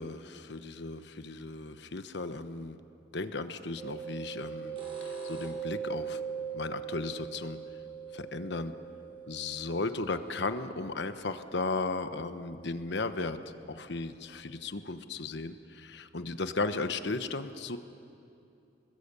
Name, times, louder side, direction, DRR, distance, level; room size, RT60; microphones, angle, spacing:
voice 1, 0.0-2.8 3.1-6.2 6.5-7.6 8.1-8.7 9.3-13.4 13.7-17.8, left 3 dB, 65° left, 10 dB, 1.1 m, -35 dB
sound 1, 3.5-3.7 4.5-5.8 8.5-8.6 9.3-9.4 9.8-9.9 10.3-10.4, left 1 dB, 30° right, 5.3 m, -48 dB
Mallet percussion, 3.8-13.4, right 7 dB, 5° right, 3.1 m, -42 dB
27.0 x 20.5 x 8.3 m, 2.7 s
head